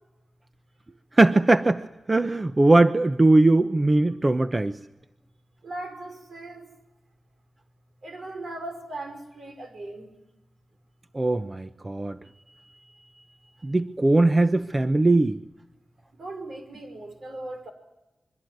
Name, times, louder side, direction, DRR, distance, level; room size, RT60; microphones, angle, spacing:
voice 1, 1.1-4.8 11.1-12.2 13.6-15.4, right 2 dB, 35° right, 10 dB, 0.9 m, -20 dB
voice 2, 5.6-6.7 8.0-10.1 16.2-17.7, right 2 dB, 75° right, 7 dB, 5.6 m, -38 dB
25.0 x 23.5 x 9.4 m, 1.0 s
cardioid pair, 60°, 0 cm